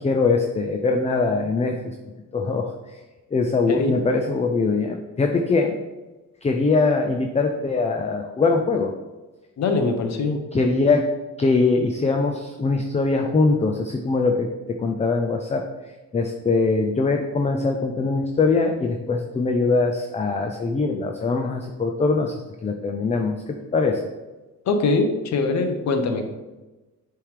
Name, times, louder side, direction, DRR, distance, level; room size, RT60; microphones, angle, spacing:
voice 1, 0.0-1.9 2.3-3.0 3.3-5.8 6.4-8.9 10.5-15.7 16.1-22.3 22.6-24.0, left 3 dB, 20° left, 4 dB, 0.6 m, -22 dB
voice 2, 9.6-10.4 24.7-26.2, left 3 dB, 65° left, 6 dB, 1.0 m, -22 dB
6.9 x 3.5 x 4.8 m, 1.1 s
cardioid pair, 90°, 30 cm